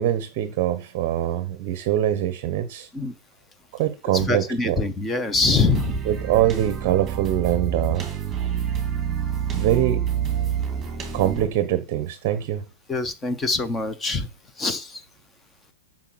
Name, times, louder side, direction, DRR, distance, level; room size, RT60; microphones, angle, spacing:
voice 1, 0.0-2.9 3.7-4.8 6.0-8.1 9.5-10.0 11.1-12.6, right 12 dB, 30° right, 0.9 m, -23 dB
voice 2, 4.1-6.0 12.9-14.3 14.6-15.0, left 3 dB, 10° left, 0.8 m, -24 dB
sound 1, 5.4-11.5, right 8 dB, 10° right, 2.5 m, -27 dB
8.2 x 6.1 x 7.7 m
supercardioid pair, 175°, 0 cm